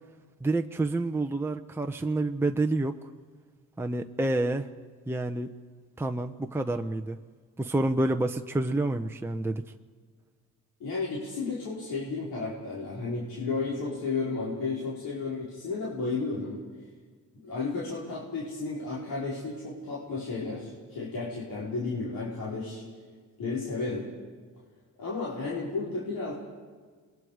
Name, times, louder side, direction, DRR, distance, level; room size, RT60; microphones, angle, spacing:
voice 1, 0.4-3.0 3.8-4.7 5.1-5.5 6.0-7.2 7.6-9.6, right 2 dB, 5° right, 5 dB, 0.9 m, -28 dB
voice 2, 10.8-16.6 17.4-22.8 23.4-24.1 25.0-26.3, left 3 dB, 75° left, -6 dB, 4.9 m, -33 dB
28.0 x 21.5 x 5.0 m, 1.6 s
cardioid pair, 80°, 35 cm